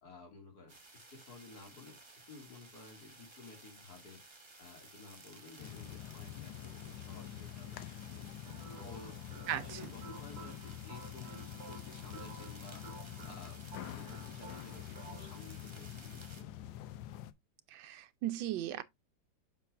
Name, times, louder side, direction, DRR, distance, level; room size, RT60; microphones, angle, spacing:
voice 1, 0.0-2.0 2.3-4.2 4.6-8.3 8.8-9.2 9.6-13.6 13.9-16.7, left 4 dB, 55° left, 2.8 m, -54 dB
sound 1, 0.7-16.4, right 3 dB, 20° right, 1.0 m, -56 dB
sound 2, 5.6-17.3, left 12 dB, 80° left, 1.3 m, -46 dB
sound 3, 8.4-15.5, right 3 dB, 55° right, 2.2 m, -53 dB
voice 2, 17.7-18.8, right 12 dB, 80° right, 1.4 m, -36 dB
7.5 x 6.4 x 2.4 m
omnidirectional pair, 2.1 m